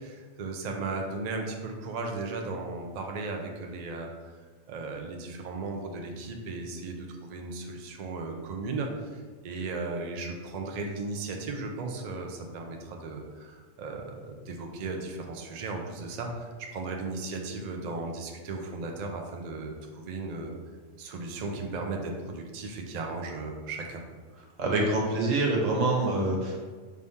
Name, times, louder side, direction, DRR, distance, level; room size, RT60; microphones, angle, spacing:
voice 1, 0.0-4.3 4.7-20.6 21.0-24.0, right 3 dB, 50° right, 2 dB, 0.5 m, -36 dB
voice 2, 24.6-26.7, right 2 dB, 85° right, -1 dB, 1.3 m, -26 dB
4.7 x 2.7 x 3.5 m, 1.4 s
omnidirectional pair, 1.3 m